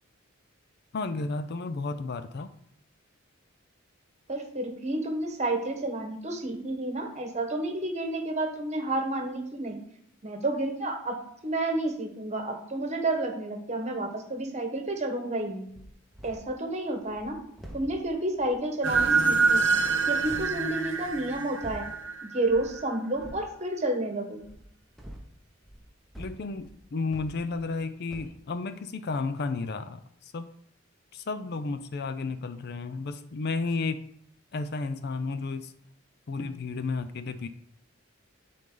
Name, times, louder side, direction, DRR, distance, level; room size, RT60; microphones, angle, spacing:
voice 1, 0.9-2.5 26.2-30.5 31.1-34.0 34.5-35.7 36.3-37.5, left 3 dB, 55° left, 11 dB, 0.5 m, -32 dB
voice 2, 4.3-9.8 10.2-15.7 16.2-17.4 17.7-19.6 20.1-21.9 22.3-24.4, right 2 dB, 35° right, 4 dB, 1.2 m, -30 dB
sound 1, 15.7-16.6 17.0-20.6 21.0-22.1 22.4-22.8 23.1-23.5 24.4-27.8 28.1-28.4, equal, ahead, 0.9 m, -47 dB
sound 2, 18.8-22.8, right 4 dB, 65° right, 0.8 m, -26 dB
10.5 x 3.9 x 3.8 m, 0.70 s
head